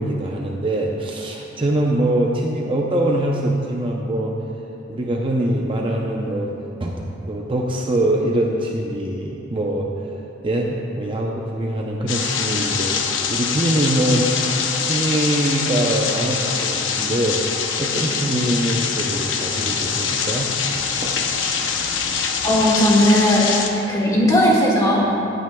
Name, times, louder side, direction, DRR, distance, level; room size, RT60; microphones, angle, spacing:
voice 1, 0.0-4.3 4.9-6.5 6.8-9.9 10.4-14.3 14.8-17.4 17.8-20.5 21.0-21.2, right 1 dB, 25° right, -1 dB, 0.6 m, -23 dB
sound 1, 12.1-23.7, left 6 dB, 85° left, 0.8 m, -24 dB
voice 2, 22.4-23.4 23.9-25.0, left 1 dB, 20° left, -4 dB, 1.7 m, -16 dB
16.5 x 9.1 x 2.3 m, 3.0 s
head